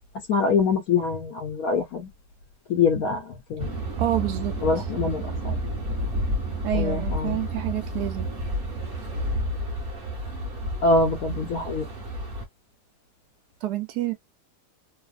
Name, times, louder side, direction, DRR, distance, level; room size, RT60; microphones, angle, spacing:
voice 1, 0.3-2.1 2.7-3.7 4.6-5.6 6.7-7.4 10.8-11.9, left 4 dB, 70° left, 1.1 m, -24 dB
sound 1, 3.6-12.4, equal, 35° right, 1.3 m, -30 dB
voice 2, 4.0-4.8 6.6-8.3 13.6-14.1, right 13 dB, 75° right, 1.1 m, -28 dB
3.2 x 2.0 x 2.4 m
omnidirectional pair, 1.8 m